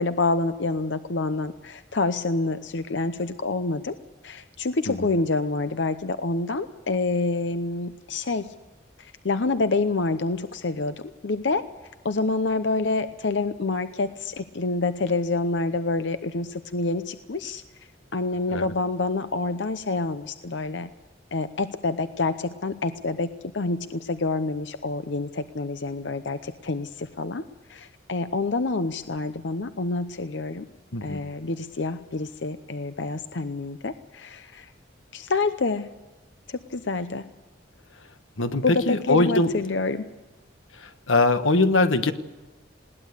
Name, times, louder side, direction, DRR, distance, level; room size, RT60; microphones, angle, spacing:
voice 1, 0.0-4.0 4.2-8.5 9.2-10.9 11.2-11.6 12.0-17.6 18.1-20.9 21.3-27.4 27.7-30.6 31.0-34.7 35.1-35.9 36.5-37.2 38.6-40.0, left 3 dB, 65° left, 11 dB, 0.8 m, -27 dB
voice 2, 30.9-31.2 38.4-39.5 41.1-42.1, left 2 dB, 90° left, 9 dB, 1.4 m, -22 dB
20.5 x 18.0 x 8.1 m, 1.2 s
head